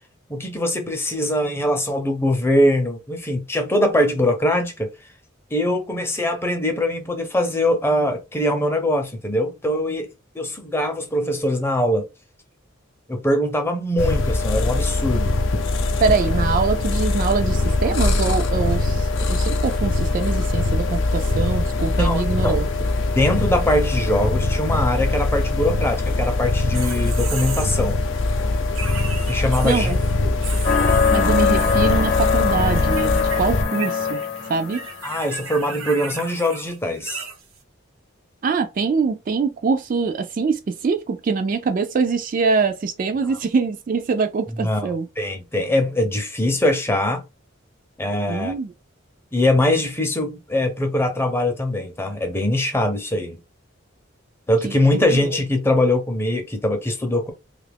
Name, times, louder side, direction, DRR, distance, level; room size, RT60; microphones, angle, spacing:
voice 1, 0.3-4.9 5.5-10.1 10.3-12.1 13.1-15.4 21.9-22.6 23.1-28.0 29.3-30.4 35.0-37.2 44.6-44.9 45.2-47.2 48.0-48.5 49.3-53.4 54.5-57.3, left 1 dB, 10° left, 0.6 m, -22 dB
sound 1, 14.0-33.6, left 2 dB, 70° left, 0.5 m, -22 dB
voice 2, 16.0-22.7 29.6-30.0 31.1-34.2 34.5-34.8 38.4-45.1 48.3-48.7 54.6-55.3, right 4 dB, 40° right, 0.3 m, -23 dB
sound 2, 26.5-28.0 28.7-30.1 30.4-32.5 32.8-33.4 33.6-37.6, right 5 dB, 85° right, 0.9 m, -35 dB
sound 3, 30.6-35.0, left 6 dB, 40° left, 0.8 m, -22 dB
2.8 x 2.4 x 3.4 m
head